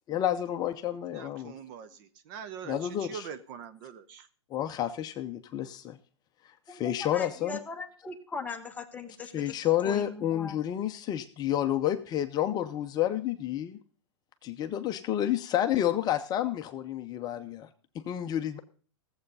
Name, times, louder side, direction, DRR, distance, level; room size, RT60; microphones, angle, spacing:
voice 1, 0.1-1.5 2.7-3.3 4.5-6.0 6.7-7.6 9.3-13.8 14.4-17.7 18.1-18.6, left 11 dB, 25° left, 8 dB, 0.7 m, -30 dB
voice 2, 1.1-4.3, right 7 dB, 45° right, 12 dB, 0.9 m, -43 dB
voice 3, 6.7-9.5 9.8-10.6, left 4 dB, 10° left, 3 dB, 1.2 m, -39 dB
15.0 x 7.9 x 5.4 m, 0.41 s
hypercardioid pair, 130°, 15 cm